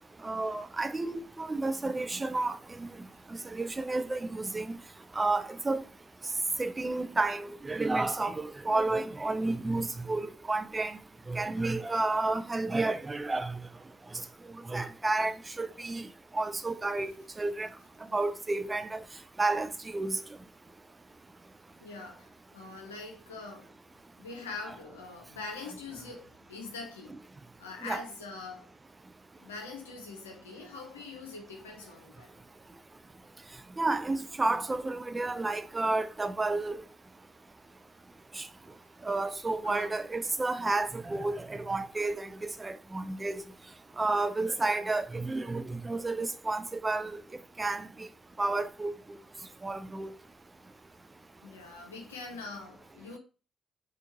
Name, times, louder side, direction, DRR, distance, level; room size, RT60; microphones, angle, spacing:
voice 1, 0.2-2.9 3.5-4.8 5.2-5.8 6.6-11.0 11.3-13.6 14.7-16.1 16.3-17.1 17.4-17.7 18.1-19.0 19.4-20.2 27.8-28.0 33.8-36.8 38.4-38.5 39.0-43.4 44.0-47.2 47.6-48.1 48.4-48.9 49.6-50.1, right 2 dB, 25° right, 0.4 m, -31 dB
voice 2, 21.8-23.7 24.2-27.2 27.6-28.7 29.4-32.3 39.6-39.9 51.4-53.2, left 4 dB, 85° left, 0.7 m, -43 dB
4.3 x 2.5 x 2.9 m
figure-of-eight pair, 40°, 0 cm